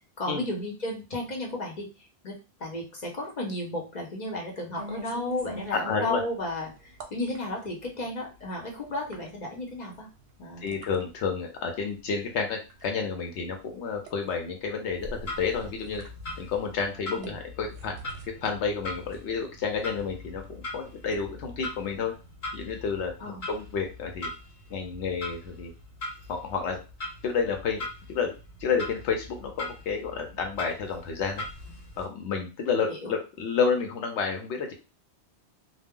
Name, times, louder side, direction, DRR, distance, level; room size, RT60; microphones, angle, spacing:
voice 1, 0.2-1.9 2.2-2.3 2.6-10.1 10.4-10.8 17.2-17.3 23.2-23.5 32.9-33.1, left 1 dB, 45° left, -1 dB, 0.8 m, -33 dB
sound 1, 4.8-22.3, right 1 dB, 65° right, 0.7 m, -48 dB
voice 2, 5.8-6.2 10.6-16.0 16.4-18.0 18.4-22.1 22.5-24.3 24.7-25.7 26.3-26.8 27.2-27.8 28.1-28.3 28.6-31.4 32.0-34.7, left 5 dB, 90° left, 3 dB, 0.9 m, -30 dB
Clock, 14.9-32.0, left 2 dB, 70° left, 1.2 m, -41 dB
2.2 x 2.0 x 3.5 m, 0.30 s
omnidirectional pair, 1.1 m